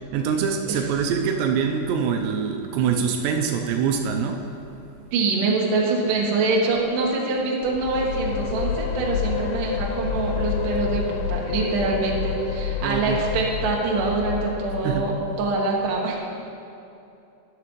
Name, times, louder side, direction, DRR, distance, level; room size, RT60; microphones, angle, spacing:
voice 1, 0.1-4.4 12.8-13.2 14.8-15.1, right 6 dB, 85° right, 4 dB, 2.9 m, -24 dB
voice 2, 5.1-16.2, right 3 dB, 60° right, -2 dB, 2.5 m, -24 dB
sound 1, 7.6-15.5, left 7 dB, 90° left, 2.8 m, -29 dB
12.5 x 11.5 x 3.1 m, 2.7 s
omnidirectional pair, 5.0 m